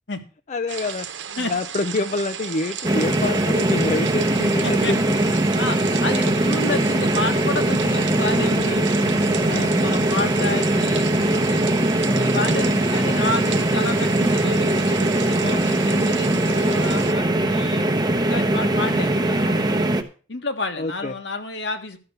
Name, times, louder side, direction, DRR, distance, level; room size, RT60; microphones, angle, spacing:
voice 1, 0.5-5.0 9.4-9.7 20.8-21.1, left 2 dB, 40° left, 10 dB, 0.5 m, -27 dB
sound 1, 0.7-17.1, right 8 dB, 80° right, 1.0 m, -35 dB
sound 2, 2.8-20.0, right 1 dB, 20° right, 0.9 m, -21 dB
voice 2, 4.6-4.9 5.6-11.7 12.2-17.9 18.2-19.9 20.3-22.0, left 2 dB, 70° left, 7 dB, 1.5 m, -30 dB
12.5 x 6.0 x 6.7 m, 0.38 s
head